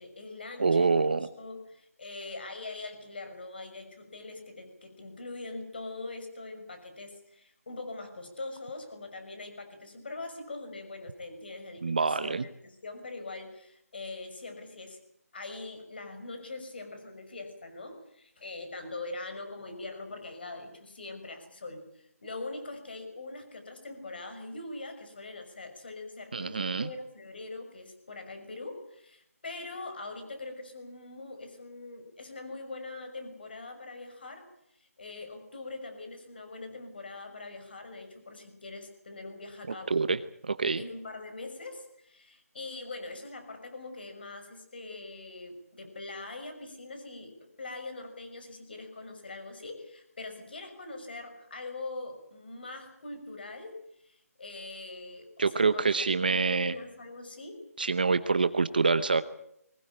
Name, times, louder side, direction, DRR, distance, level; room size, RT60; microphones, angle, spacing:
voice 1, 0.0-1.1 1.4-15.0 15.3-34.5 34.8-40.0 40.8-53.7 54.0-57.6, left 2 dB, 40° left, 7 dB, 5.9 m, -42 dB
voice 2, 0.6-1.3 11.8-12.5 26.3-26.9 39.7-40.8 55.4-56.7 57.8-59.2, right 4 dB, 35° right, 13 dB, 0.9 m, -26 dB
23.0 x 19.0 x 8.8 m, 0.76 s
hypercardioid pair, 180°, 8 cm